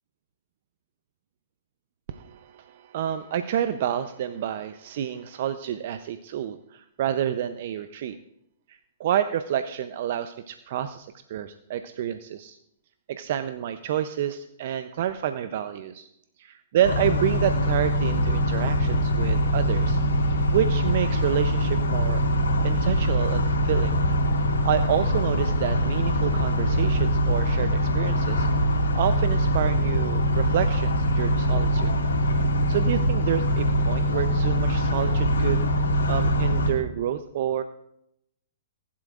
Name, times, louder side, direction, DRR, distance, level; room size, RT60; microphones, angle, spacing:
voice 1, 2.1-8.2 8.7-12.6 13.1-16.1 16.4-20.0 20.3-22.2 22.6-23.9 24.6-28.5 28.9-32.0 32.4-35.7 36.1-37.6, right 10 dB, 55° right, 11 dB, 0.6 m, -29 dB
sound 1, 16.8-36.7, equal, 80° left, 2.7 m, -23 dB
19.5 x 11.5 x 2.5 m, 0.78 s
hypercardioid pair, 125°, 0 cm